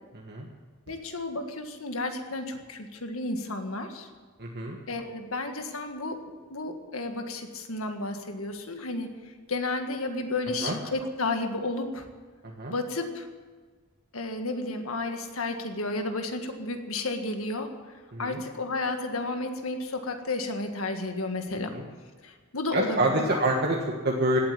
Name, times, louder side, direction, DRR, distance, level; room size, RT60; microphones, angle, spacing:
voice 1, 0.9-4.1 4.9-6.2 6.5-12.1 12.7-13.3 14.1-17.7 18.2-21.7 22.2-23.4, left 2 dB, 75° left, 6 dB, 1.7 m, -32 dB
voice 2, 4.4-4.8 10.6-10.7 12.4-12.7 18.1-18.4 21.7-21.8 22.7-24.4, right 1 dB, 50° right, -1 dB, 1.5 m, -27 dB
17.5 x 8.5 x 9.6 m, 1.5 s
head